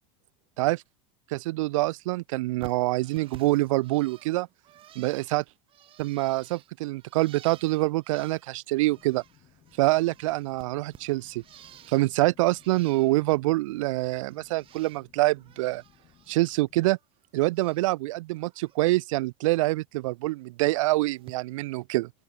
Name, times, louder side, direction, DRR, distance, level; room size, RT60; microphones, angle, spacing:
voice 1, 1.3-4.5 5.0-5.4 6.0-9.2 9.8-11.4 11.9-15.8 16.3-17.0 17.3-22.1, right 20 dB, 85° right, 0.5 m, -26 dB
Bird, 2.6-9.4 9.6-12.2 12.5-13.3 13.7-15.0 15.3-16.6 16.9-18.0 18.3-18.8 20.0-20.2 21.2-21.3, right 12 dB, 35° right, 1.7 m, -53 dB
sound 1, 8.9-16.9, left 13 dB, 35° left, 4.5 m, -61 dB
open air
supercardioid pair, 140°, 16 cm